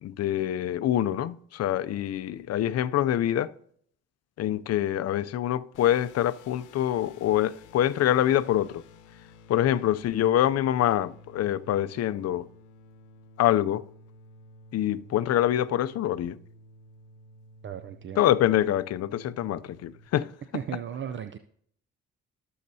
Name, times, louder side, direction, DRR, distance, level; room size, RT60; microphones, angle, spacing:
voice 1, 0.0-3.5 4.4-8.8 9.5-12.5 13.4-13.8 14.7-16.4 18.2-20.3, left 12 dB, 55° left, 0.5 m, -25 dB
sound 1, 5.7-20.1, left 2 dB, 85° left, 0.8 m, -53 dB
voice 2, 17.6-18.2 20.5-21.4, right 8 dB, 40° right, 0.4 m, -35 dB
17.5 x 6.5 x 2.7 m
cardioid pair, 90°, 30 cm